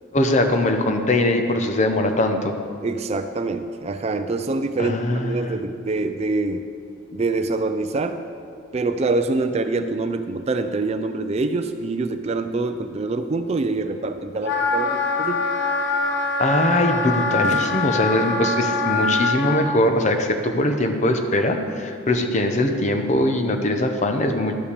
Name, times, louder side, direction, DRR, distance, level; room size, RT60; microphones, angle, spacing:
voice 1, 0.1-2.5 4.8-5.6 16.4-24.5, left 1 dB, 35° left, 5 dB, 0.8 m, -21 dB
voice 2, 2.8-6.6 7.1-8.2 8.7-15.5, right 3 dB, 35° right, 9 dB, 0.4 m, -25 dB
Wind instrument woodwind instrument, 14.4-19.6, left 3 dB, 65° left, 1.0 m, -23 dB
11.5 x 5.7 x 6.7 m, 2.3 s
head